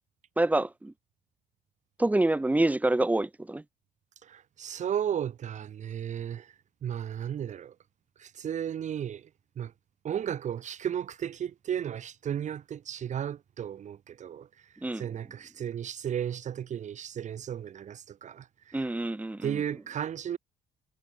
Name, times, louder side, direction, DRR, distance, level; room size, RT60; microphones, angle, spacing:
voice 1, 0.4-0.9 2.0-3.6 14.8-15.1 18.7-19.6, right 2 dB, 10° right, 1.1 m, -26 dB
voice 2, 4.2-6.5 6.8-7.7 8.2-9.3 9.6-9.7 10.0-14.5 15.0-18.8 19.4-20.4, right 9 dB, 45° right, 1.0 m, -34 dB
cardioid pair, 110°, 17 cm